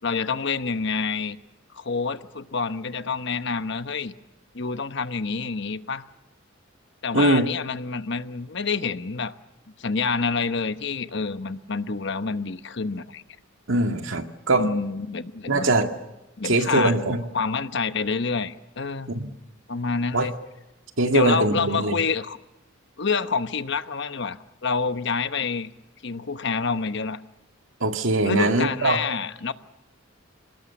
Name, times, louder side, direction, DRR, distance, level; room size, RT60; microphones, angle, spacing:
voice 1, 0.0-1.4 1.7-4.1 4.5-6.1 7.0-9.3 9.8-13.2 14.6-15.7 16.4-17.0 17.3-19.1 19.7-20.3 21.1-22.4 23.0-25.7 26.0-27.2 28.3-29.5, left 4 dB, 60° left, 11 dB, 1.0 m, -27 dB
voice 2, 13.7-14.7 15.5-15.9 16.4-17.2 19.1-19.3 20.1-20.3 21.0-22.0 27.8-29.0, right 2 dB, 70° right, 6 dB, 2.0 m, -22 dB
28.0 x 20.0 x 7.3 m, 0.93 s
head